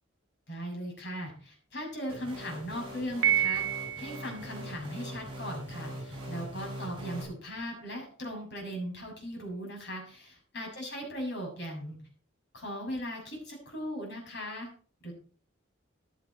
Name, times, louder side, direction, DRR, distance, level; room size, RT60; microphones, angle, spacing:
voice 1, 0.5-12.0 12.5-14.7 15.0-15.1, equal, 55° left, 1 dB, 7.0 m, -38 dB
sound 1, 2.1-7.2, right 1 dB, 25° right, 6.5 m, -42 dB
Piano, 3.2-4.4, right 10 dB, 70° right, 0.6 m, -28 dB
15.5 x 10.0 x 4.4 m, 0.41 s
head